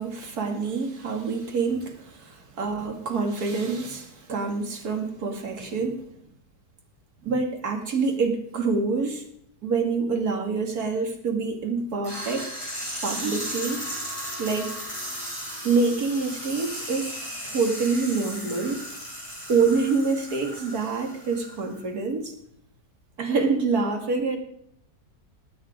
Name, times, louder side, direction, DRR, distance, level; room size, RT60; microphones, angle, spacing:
voice 1, 0.0-6.1 7.2-9.2 9.6-12.5 13.0-13.9 14.4-14.8 15.6-18.8 19.5-22.3 23.2-24.4, right 4 dB, 55° right, 3 dB, 2.6 m, -26 dB
sound 1, 12.0-21.8, equal, 25° left, 6.5 m, -36 dB
20.5 x 8.8 x 5.1 m, 0.70 s
omnidirectional pair, 1.9 m